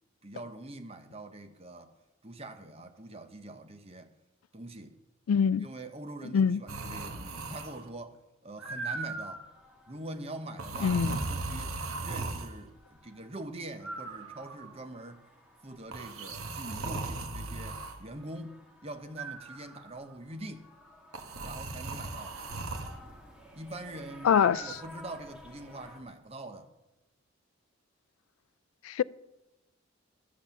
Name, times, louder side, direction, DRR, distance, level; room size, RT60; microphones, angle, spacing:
voice 1, 0.2-1.9 2.2-4.1 4.5-5.0 5.6-9.4 9.9-15.2 15.6-20.7 21.4-22.4 23.6-26.7, right 1 dB, 30° right, 0.9 m, -44 dB
voice 2, 5.3-5.7 6.3-6.6 10.8-11.2 24.2-24.6 28.8-29.0, left 7 dB, 80° left, 0.3 m, -24 dB
sound 1, 6.7-7.9 8.6-9.5 10.6-12.5 13.8-14.8 15.9-18.0 19.2-19.9 21.1-23.0 24.3-24.7, right 3 dB, 85° right, 1.3 m, -37 dB
sound 2, 8.9-26.0, left 1 dB, 5° right, 1.7 m, -55 dB
12.5 x 8.1 x 7.2 m
head